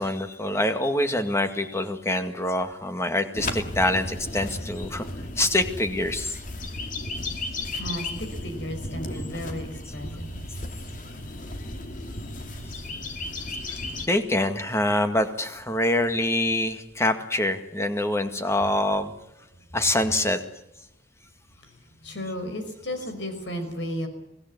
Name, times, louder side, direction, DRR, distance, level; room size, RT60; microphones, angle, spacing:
voice 1, 0.0-5.1 5.4-6.4 14.0-19.1 19.7-20.4, left 1 dB, 15° left, 7 dB, 2.0 m, -25 dB
sound 1, 3.3-14.1, left 2 dB, 45° left, 2.5 m, -34 dB
voice 2, 7.2-10.8 19.6-19.7 21.6-24.1, equal, 85° left, 7 dB, 5.5 m, -35 dB
24.5 x 17.5 x 9.5 m, 0.85 s
head